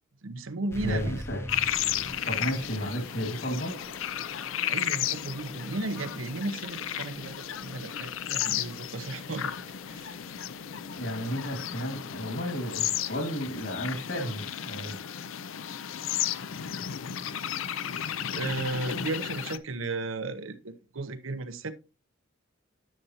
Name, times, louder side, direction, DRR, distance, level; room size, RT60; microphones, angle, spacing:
voice 1, 0.2-1.2 4.7-9.5 9.9-10.1 18.3-21.7, right 2 dB, 90° right, 0.8 m, -35 dB
sound 1, 0.7-15.8, left 1 dB, 15° left, 0.6 m, -46 dB
voice 2, 0.8-1.4 2.3-3.8 11.0-15.0, equal, 60° left, 2.3 m, -33 dB
sound 2, 1.5-19.6, left 10 dB, 80° left, 0.5 m, -34 dB
10.5 x 6.7 x 2.9 m
head